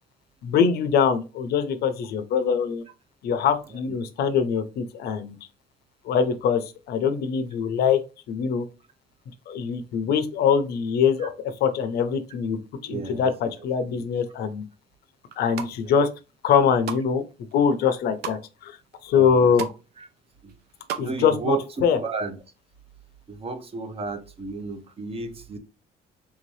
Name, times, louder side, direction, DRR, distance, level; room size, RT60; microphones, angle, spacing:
voice 1, 0.4-2.8 3.2-5.4 6.0-8.0 8.3-8.6 9.5-11.3 11.6-14.6 15.4-16.1 16.4-17.2 17.5-18.8 19.0-19.7 21.0-21.6 21.8-22.0, left 7 dB, 70° left, 0.6 m, -23 dB
voice 2, 12.9-13.5 13.9-14.0 15.8-15.9 19.1-19.5 20.0-20.1 20.4-20.5 21.0-21.6 22.0-22.4 23.3-25.6, right 4 dB, 35° right, 0.7 m, -33 dB
sound 1, 15.2-15.7 16.3-17.1 17.5-18.4 18.9-19.0 19.2-19.8 20.1-21.1 21.4-21.5, right 8 dB, 75° right, 0.5 m, -34 dB
3.4 x 2.7 x 3.1 m
cardioid pair, 110°, 17 cm